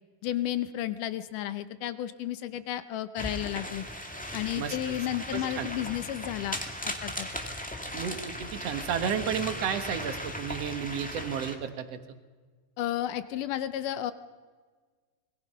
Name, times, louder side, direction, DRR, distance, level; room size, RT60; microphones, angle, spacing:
voice 1, 0.2-3.9 4.3-7.3 12.8-14.1, left 12 dB, 75° left, 12 dB, 2.1 m, -32 dB
sound 1, 3.2-11.5, equal, 5° left, 0.6 m, -37 dB
voice 2, 4.6-4.9 5.3-5.7 7.9-12.0, right 8 dB, 55° right, 8 dB, 2.1 m, -32 dB
26.0 x 21.5 x 5.6 m, 1.4 s
omnidirectional pair, 4.2 m